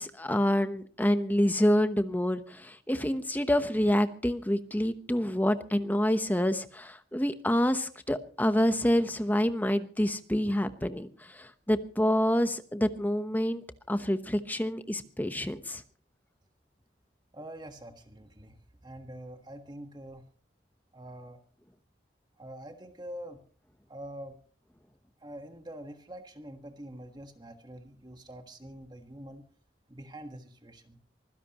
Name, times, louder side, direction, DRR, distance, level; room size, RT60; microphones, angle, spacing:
voice 1, 0.0-15.8, equal, 10° left, 10 dB, 1.0 m, -27 dB
voice 2, 17.3-20.2 20.9-21.4 22.4-23.4 23.9-24.4 25.2-29.4 29.9-31.0, right 1 dB, 25° right, 6 dB, 1.5 m, -45 dB
24.5 x 16.0 x 3.0 m, 0.41 s
head